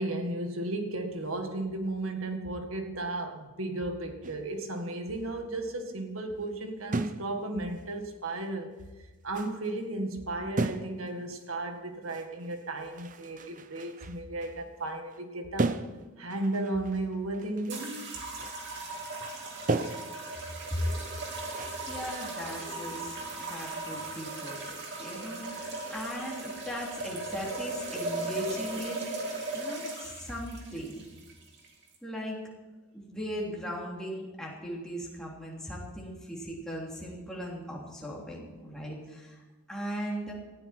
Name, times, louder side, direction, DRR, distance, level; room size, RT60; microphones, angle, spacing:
voice 1, 0.0-8.8 9.2-15.8 16.2-18.0, right 2 dB, 75° right, 5 dB, 1.8 m, -34 dB
sound 1, 4.2-4.6 6.9-7.4 7.7-7.8 8.7-8.8 9.3-9.7 10.6-11.1 11.4-11.5 12.1-15.2 15.6-17.8 18.1-18.9 19.2-19.4 19.7-22.3, right 3 dB, 35° right, 0.6 m, -36 dB
sound 2, 17.7-32.0, right 2 dB, 55° right, 2.8 m, -38 dB
voice 2, 21.5-23.2 23.5-29.1 29.5-31.0 32.0-32.4 32.9-39.4 39.7-40.3, equal, 5° left, -4 dB, 3.2 m, -38 dB
18.5 x 14.0 x 4.5 m, 1.2 s
head